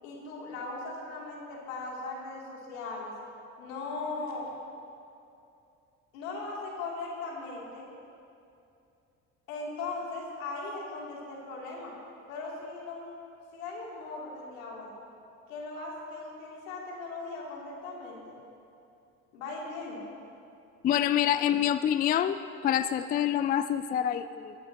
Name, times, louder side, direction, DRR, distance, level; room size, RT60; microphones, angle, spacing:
voice 1, 0.0-3.1 3.6-4.5 6.1-7.8 9.5-11.9 12.3-13.1 13.5-14.9 15.5-18.3 19.3-20.0, left 3 dB, 75° left, -3 dB, 3.0 m, -38 dB
voice 2, 20.8-22.4 22.6-24.5, left 10 dB, 25° left, 13 dB, 0.3 m, -26 dB
22.0 x 11.5 x 2.9 m, 2.6 s
figure-of-eight pair, 55°, 41 cm